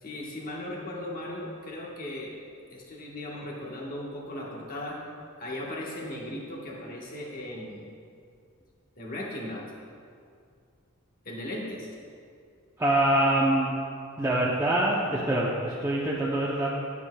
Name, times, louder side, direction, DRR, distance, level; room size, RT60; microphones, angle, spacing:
voice 1, 0.0-2.3 2.7-5.0 5.4-7.9 9.0-9.6 11.2-11.9, left 1 dB, 40° left, -3 dB, 1.2 m, -37 dB
voice 2, 12.8-13.7 14.2-16.7, right 1 dB, 15° right, -6 dB, 0.5 m, -24 dB
10.0 x 8.2 x 2.2 m, 2.3 s
head